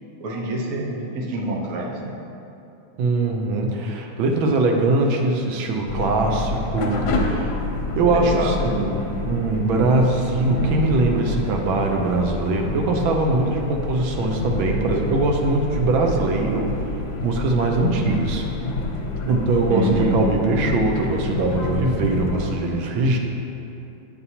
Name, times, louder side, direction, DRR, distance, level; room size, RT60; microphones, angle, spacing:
voice 1, 0.2-2.1 8.1-8.5 19.7-20.2, right 2 dB, 55° right, -1 dB, 1.2 m, -26 dB
voice 2, 3.0-7.6 8.0-16.8 17.2-18.4 19.3-23.2, right 2 dB, 80° right, 2 dB, 1.5 m, -21 dB
sound 1, 5.9-22.6, left 2 dB, 65° left, 1.2 m, -28 dB
8.3 x 6.9 x 2.8 m, 2.8 s
omnidirectional pair, 2.2 m